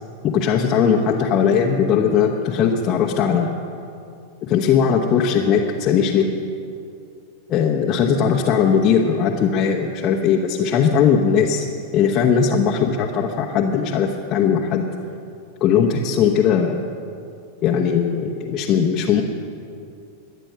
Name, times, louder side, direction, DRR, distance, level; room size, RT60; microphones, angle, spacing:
voice 1, 0.2-3.5 4.4-6.3 7.5-11.7 11.9-14.9 15.6-16.9 17.6-19.2, left 7 dB, 30° left, -1 dB, 1.1 m, -19 dB
21.5 x 9.1 x 6.3 m, 2.5 s
figure-of-eight pair, 90°, 0 cm